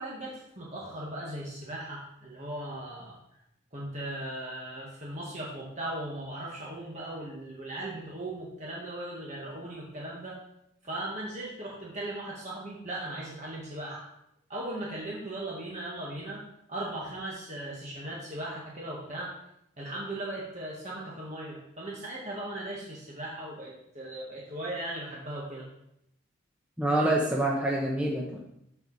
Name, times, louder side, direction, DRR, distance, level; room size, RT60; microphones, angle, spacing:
voice 1, 0.0-3.2 3.7-10.4 10.8-14.0 14.5-16.4 16.7-19.3 19.8-25.6, right 1 dB, 35° right, -5 dB, 1.6 m, -38 dB
voice 2, 26.8-28.4, right 1 dB, 5° right, -3 dB, 1.0 m, -26 dB
13.5 x 4.8 x 4.1 m, 0.79 s
head